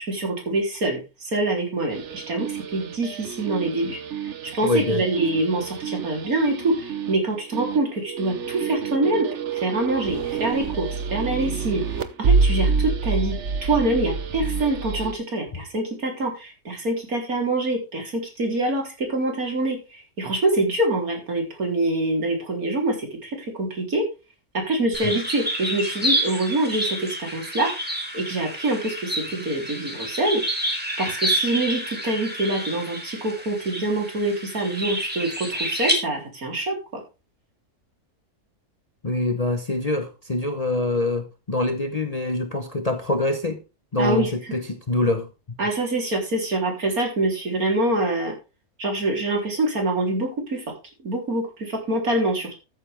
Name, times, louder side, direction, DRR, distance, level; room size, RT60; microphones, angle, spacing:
voice 1, 0.1-4.0 4.5-24.0 24.5-27.7 28.1-30.4 31.0-37.0 44.0-44.3 45.6-48.3 48.8-50.6 51.0-52.6, right 2 dB, 70° right, 4.2 m, -25 dB
sound 1, 1.9-15.1, right 5 dB, 55° right, 1.2 m, -27 dB
voice 2, 4.6-5.0 25.0-25.2 39.0-43.6 43.9-45.6, left 2 dB, 30° left, 1.0 m, -25 dB
sound 2, 24.9-35.9, right 1 dB, 5° right, 3.2 m, -29 dB
13.5 x 9.2 x 3.6 m
omnidirectional pair, 1.6 m